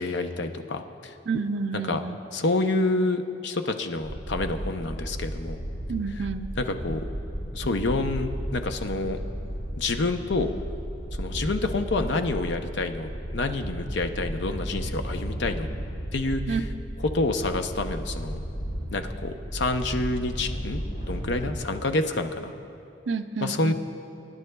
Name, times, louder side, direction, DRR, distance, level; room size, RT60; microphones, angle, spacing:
voice 1, 0.0-1.1 1.7-2.0 2.3-5.6 6.6-7.1 7.5-9.2 9.8-10.5 11.2-15.7 16.1-16.6 17.1-18.4 18.9-20.8 21.1-22.5 23.4-23.7, left 2 dB, 70° left, 7 dB, 0.7 m, -28 dB
voice 2, 1.3-2.2 5.9-6.5 16.5-16.7 23.1-23.7, right 5 dB, 85° right, 8 dB, 0.4 m, -29 dB
sound 1, 4.0-21.5, equal, 90° left, 3.0 m, -34 dB
25.0 x 10.5 x 2.3 m, 2.7 s
head